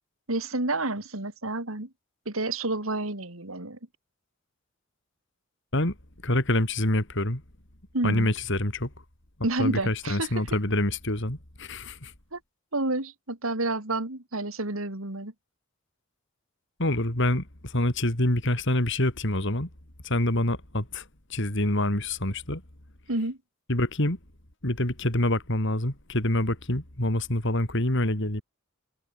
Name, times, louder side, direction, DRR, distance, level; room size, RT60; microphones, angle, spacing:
voice 1, 0.3-1.9 2.3-3.8 7.9-8.3 9.4-10.3 12.3-12.4 12.7-15.3 23.1-23.4, right 2 dB, 85° right, 3.6 m, -29 dB
voice 2, 6.2-7.4 8.0-8.9 9.6-12.1 16.8-19.7 20.0-21.0 21.3-22.6 23.7-24.2 24.6-28.4, left 1 dB, 60° left, 4.1 m, -26 dB
head